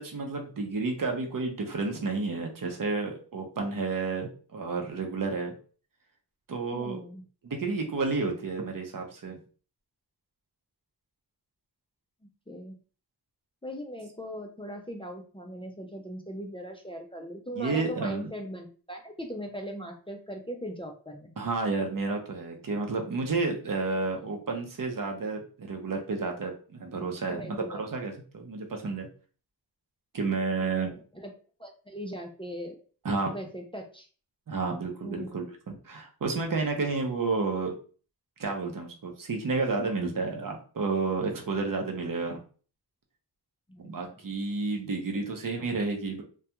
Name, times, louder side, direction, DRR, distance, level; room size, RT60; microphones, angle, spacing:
voice 1, 0.0-5.6 6.5-7.0 7.4-9.4 17.6-18.3 21.4-29.1 30.1-30.9 33.0-33.3 34.5-37.7 38.4-42.4 43.8-46.2, right 3 dB, 50° right, 3 dB, 0.6 m, -31 dB
voice 2, 6.7-7.2 12.5-12.8 13.6-21.4 27.3-27.8 30.6-31.3 31.6-32.8 33.2-34.1 35.0-35.4 43.7-43.9, equal, 15° left, 3 dB, 0.3 m, -39 dB
2.3 x 2.2 x 2.8 m, 0.40 s
wide cardioid pair, 75°, 42 cm